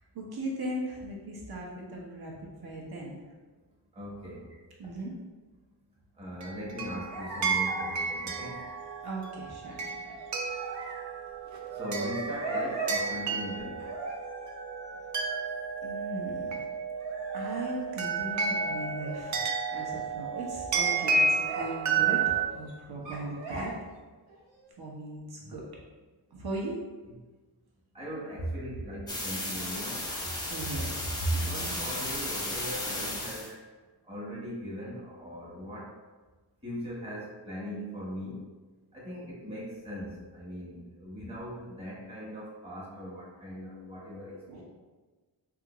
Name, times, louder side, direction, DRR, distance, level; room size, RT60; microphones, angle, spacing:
voice 1, 0.1-3.2 4.5-5.1 9.0-9.9 15.8-16.6 17.3-19.4 19.7-22.2 22.5-23.7 24.8-25.7 26.3-26.8 30.5-31.9 33.5-33.6 44.5-44.6, right 1 dB, 60° right, -3 dB, 0.9 m, -37 dB
voice 2, 3.9-4.5 6.1-8.6 11.7-13.9 27.9-30.1 31.3-33.6 34.0-35.9 36.6-38.5 38.9-44.6, equal, 15° right, -6 dB, 1.0 m, -40 dB
sound 1, 6.4-22.5, right 4 dB, 45° right, 0.4 m, -32 dB
sound 2, 7.1-13.0 13.8-15.4 17.0-19.6 19.8-20.4 20.7-21.7 22.0-22.7 23.1-23.9 24.3-24.7, right 2 dB, 90° right, 0.9 m, -40 dB
sound 3, 29.1-33.5, left 1 dB, 10° left, 0.6 m, -34 dB
3.4 x 2.5 x 2.9 m, 1.3 s
wide cardioid pair, 105°, 41 cm